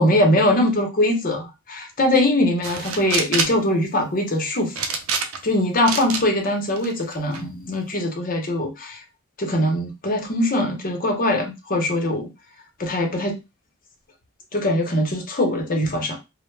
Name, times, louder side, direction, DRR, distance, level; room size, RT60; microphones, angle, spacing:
voice 1, 0.0-4.7 5.4-9.0 9.4-12.3 12.8-13.4 14.5-16.2, left 1 dB, 40° left, 2 dB, 0.7 m, -22 dB
sound 1, 2.6-3.6 4.8-5.5 5.9-6.2 6.8-7.4, right 5 dB, 75° right, 0.5 m, -26 dB
2.1 x 2.0 x 3.1 m, 0.24 s
head